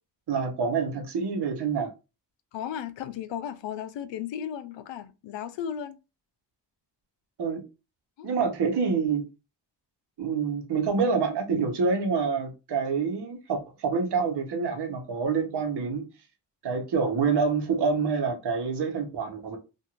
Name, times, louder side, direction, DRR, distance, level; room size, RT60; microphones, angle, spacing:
voice 1, 0.3-1.9 7.4-7.6 8.2-9.2 10.2-16.0 16.6-19.6, right 5 dB, 65° right, 1.0 m, -27 dB
voice 2, 2.5-6.0 8.2-8.3, left 9 dB, 90° left, 0.5 m, -35 dB
3.0 x 2.5 x 2.4 m
cardioid pair, 70°, 43 cm